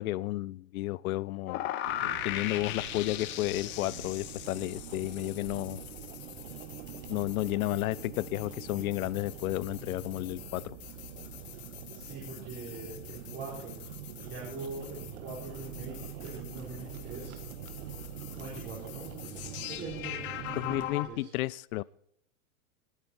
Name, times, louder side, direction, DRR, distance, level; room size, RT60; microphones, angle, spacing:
voice 1, 0.0-1.7 2.0-5.8 7.1-10.8 20.5-21.8, left 17 dB, 75° left, 0.5 m, -32 dB
sound 1, 1.5-21.1, left 13 dB, 25° left, 0.8 m, -41 dB
sound 2, 1.8-20.9, right 9 dB, 65° right, 1.9 m, -45 dB
voice 2, 11.9-13.8 14.2-17.4 18.3-21.3, right 3 dB, 25° right, 3.9 m, -43 dB
19.5 x 9.1 x 4.3 m
supercardioid pair, 145°, 43 cm